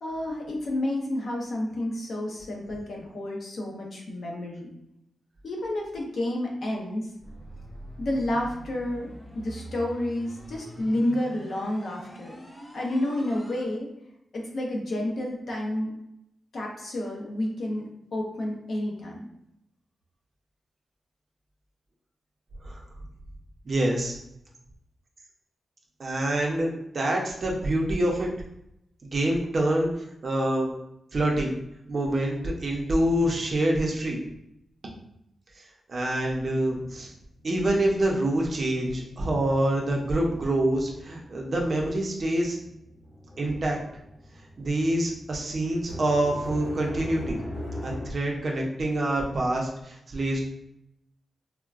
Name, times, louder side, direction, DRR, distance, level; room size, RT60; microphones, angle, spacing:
voice 1, 0.0-4.7 5.4-7.1 8.0-12.4 12.7-13.9 14.3-15.9 16.5-17.8 18.1-19.3, left 1 dB, 50° left, -1 dB, 0.6 m, -30 dB
sound 1, 7.2-13.6, equal, 15° left, 0.4 m, -44 dB
voice 2, 23.6-24.2 26.0-28.3 29.0-29.9 30.2-30.7 31.1-31.6 31.9-34.2 35.9-37.1 37.4-42.6 43.4-43.8 44.6-47.4 47.8-50.4, right 1 dB, 40° right, -1 dB, 0.6 m, -26 dB
sound 2, 36.9-38.3 38.6-48.1, left 1 dB, 75° left, 1.3 m, -42 dB
3.7 x 2.1 x 2.3 m, 0.81 s
wide cardioid pair, 175°, 0 cm